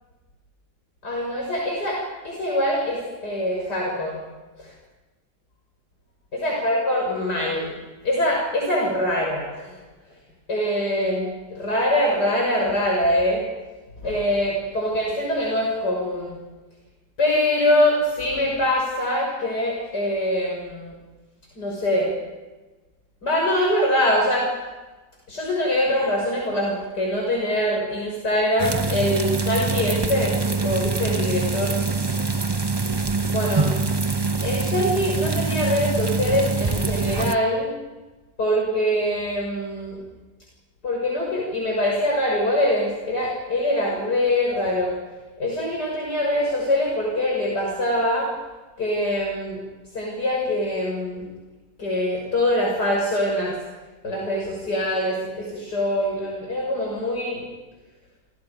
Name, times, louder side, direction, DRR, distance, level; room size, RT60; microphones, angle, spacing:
voice 1, 1.0-4.2 4.6-4.7 6.3-7.7 8.0-9.8 10.5-13.4 14.0-16.4 17.2-21.0 21.6-22.1 23.2-24.5 25.3-31.8 33.3-33.7 34.4-37.7 38.4-40.0 40.8-44.9 45.4-48.3 48.8-49.6 49.9-51.3 51.8-53.6 54.0-57.4, left 1 dB, 70° left, -2 dB, 6.9 m, -23 dB
sound 1, 28.6-37.4, right 4 dB, 20° right, 0.8 m, -24 dB
29.5 x 26.5 x 5.2 m, 1.2 s
omnidirectional pair, 1.9 m